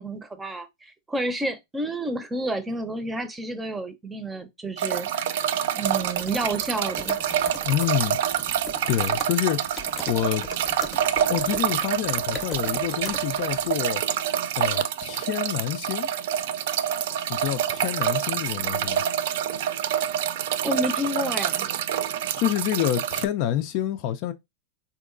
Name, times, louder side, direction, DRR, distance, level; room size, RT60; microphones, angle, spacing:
voice 1, 0.0-5.2 5.8-7.2 20.6-21.7, right 1 dB, 15° right, 0.6 m, -30 dB
sound 1, 4.8-23.3, right 10 dB, 70° right, 0.3 m, -27 dB
sound 2, 5.9-13.8, left 4 dB, 25° left, 0.8 m, -41 dB
voice 2, 7.6-8.2 8.9-10.5 11.3-14.0 14.6-16.1 17.3-19.0 22.4-24.3, left 12 dB, 55° left, 0.4 m, -27 dB
3.7 x 2.8 x 2.5 m
hypercardioid pair, 100°, 0 cm